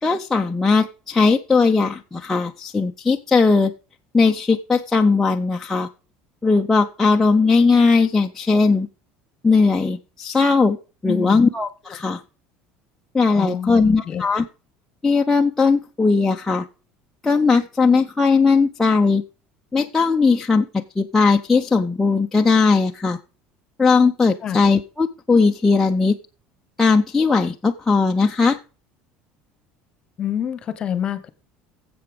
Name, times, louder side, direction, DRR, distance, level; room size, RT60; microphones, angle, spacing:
voice 1, 0.0-3.7 4.1-5.9 6.4-8.9 9.4-10.8 11.0-12.2 13.1-14.5 15.0-16.6 17.2-19.2 19.7-23.2 23.8-26.1 26.8-28.6, left 4 dB, 10° left, 1 dB, 0.5 m, -18 dB
voice 2, 11.1-11.4 13.3-14.2 24.4-24.6 30.2-31.3, left 9 dB, 25° left, 14 dB, 1.1 m, -27 dB
11.0 x 7.7 x 5.1 m, 0.34 s
cardioid pair, 170°, 4 cm